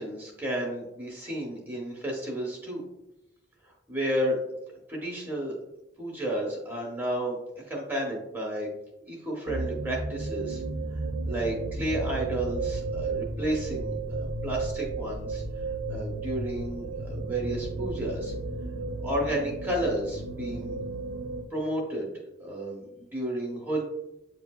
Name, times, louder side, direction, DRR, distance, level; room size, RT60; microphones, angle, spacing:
voice 1, 0.0-2.8 3.9-4.4 4.9-5.6 6.0-7.4 7.7-8.7 9.1-10.6 11.3-15.4 15.9-18.3 19.0-20.8 21.5-22.1 22.4-23.8, right 1 dB, 10° right, -2 dB, 0.8 m, -32 dB
sound 1, 9.5-21.4, right 3 dB, 75° right, 0.5 m, -33 dB
8.0 x 2.7 x 2.2 m, 0.91 s
head